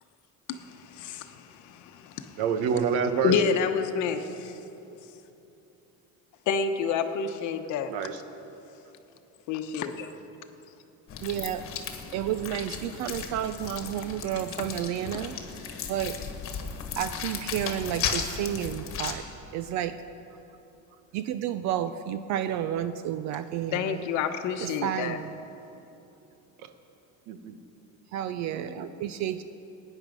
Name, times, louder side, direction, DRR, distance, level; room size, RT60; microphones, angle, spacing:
voice 1, 0.5-2.4 3.2-4.6 6.5-7.9 9.5-10.1 23.7-25.2, left 6 dB, 60° left, 0.9 m, -29 dB
voice 2, 2.4-3.4 7.9-8.2 27.3-27.6 28.5-28.9, right 6 dB, 90° right, 1.2 m, -27 dB
sound 1, 11.1-19.1, left 7 dB, 40° left, 1.4 m, -35 dB
voice 3, 11.2-11.7 12.1-15.4 15.9-16.2 17.0-19.2 19.5-20.0 21.1-24.0 24.6-25.3 28.1-29.4, right 10 dB, 55° right, 0.5 m, -31 dB
19.0 x 9.9 x 5.3 m
cardioid pair, 165°, 33 cm